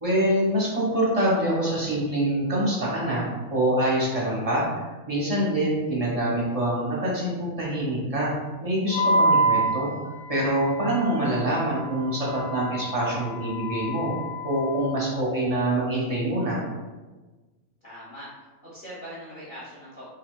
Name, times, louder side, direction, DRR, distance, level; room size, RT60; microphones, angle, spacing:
voice 1, 0.0-4.7 5.1-8.3 8.6-9.9 10.3-14.1 14.4-16.6, right 1 dB, 35° right, -6 dB, 0.7 m, -25 dB
Wind instrument woodwind instrument, 8.9-15.1, right 1 dB, 85° left, 1.2 m, -28 dB
voice 2, 17.8-20.1, equal, 45° left, -8 dB, 0.7 m, -42 dB
3.9 x 2.6 x 2.2 m, 1.2 s
omnidirectional pair, 1.5 m